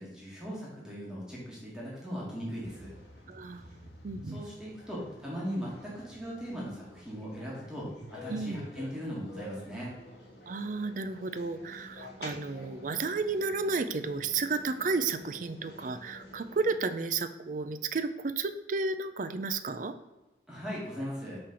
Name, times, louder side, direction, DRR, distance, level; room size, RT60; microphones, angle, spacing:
voice 1, 0.0-2.9 4.3-9.9 20.5-21.4, equal, 5° right, -6 dB, 1.5 m, -39 dB
sound 1, 2.6-16.8, left 1 dB, 65° left, 1.6 m, -50 dB
voice 2, 3.3-4.4 8.3-8.7 10.5-20.0, right 4 dB, 45° right, 11 dB, 0.4 m, -32 dB
5.9 x 3.3 x 5.6 m, 1.1 s
head